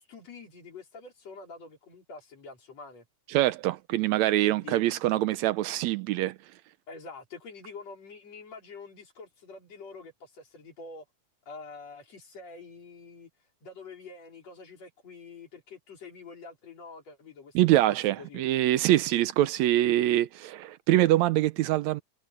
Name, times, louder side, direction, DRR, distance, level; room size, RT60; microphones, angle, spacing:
voice 1, 0.0-3.1 4.4-4.9 6.9-11.0 11.5-13.3 13.6-18.4, left 4 dB, 60° left, 5.4 m, -46 dB
voice 2, 3.3-6.4 17.6-22.0, right 15 dB, 80° right, 1.8 m, -24 dB
omnidirectional pair, 3.4 m